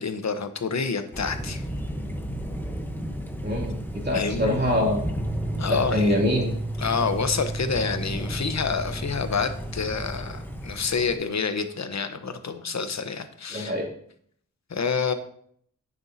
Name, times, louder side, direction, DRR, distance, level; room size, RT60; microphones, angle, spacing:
voice 1, 0.0-1.6 4.1-4.6 5.6-6.2 6.8-13.7 14.7-15.1, left 5 dB, 55° left, 9 dB, 1.0 m, -28 dB
Thunder, 1.1-11.2, equal, 5° left, 1.0 m, -34 dB
voice 2, 3.4-5.0 5.7-6.5 13.5-13.9, left 1 dB, 30° right, -2 dB, 2.7 m, -24 dB
sound 1, 5.1-10.9, right 1 dB, 15° right, 1.3 m, -34 dB
10.5 x 8.8 x 2.8 m, 0.63 s
wide cardioid pair, 115°, 33 cm